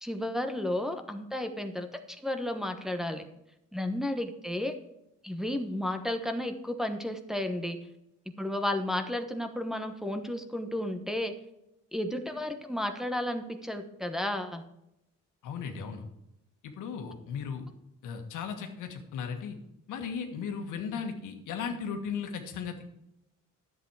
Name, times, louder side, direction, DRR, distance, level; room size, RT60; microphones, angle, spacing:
voice 1, 0.0-3.2 3.7-4.7 5.2-7.8 8.4-11.3 11.9-14.6, left 1 dB, ahead, 5 dB, 1.1 m, -33 dB
voice 2, 15.4-16.0 16.6-17.7 18.0-19.6 19.9-22.8, left 6 dB, 85° left, 4 dB, 1.6 m, -36 dB
10.5 x 8.2 x 4.8 m, 0.87 s
cardioid pair, 90°, 30 cm